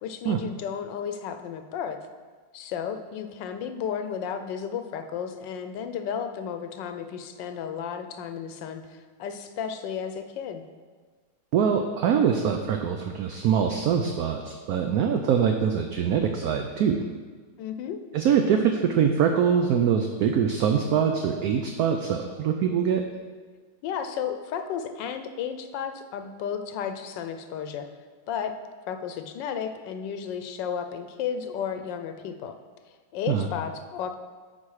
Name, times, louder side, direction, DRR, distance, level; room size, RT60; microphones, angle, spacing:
voice 1, 0.0-2.0 2.5-10.6 17.6-18.0 23.8-27.9 28.3-28.5 28.9-32.5 33.1-34.2, left 7 dB, 85° left, 8 dB, 1.3 m, -33 dB
voice 2, 11.5-17.0 18.1-23.0 33.3-33.5, right 7 dB, 70° right, 4 dB, 0.9 m, -23 dB
11.0 x 4.5 x 4.8 m, 1.5 s
omnidirectional pair, 1.9 m